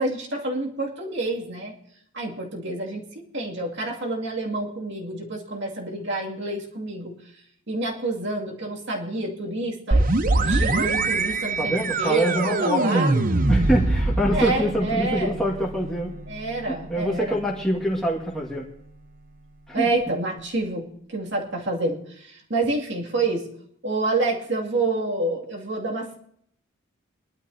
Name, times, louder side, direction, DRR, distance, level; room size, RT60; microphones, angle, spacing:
voice 1, 0.0-1.7 2.1-3.0 3.3-7.1 7.7-10.1 10.4-13.2 14.3-15.4 16.3-17.4 19.7-23.4 23.8-26.2, right 2 dB, 55° right, -1 dB, 2.3 m, -28 dB
sound 1, 9.9-19.5, right 2 dB, 40° right, 0.8 m, -25 dB
voice 2, 11.6-13.2 13.5-16.1 16.9-18.7 19.7-19.9, equal, ahead, -4 dB, 1.9 m, -25 dB
23.0 x 12.0 x 2.8 m, 0.68 s
head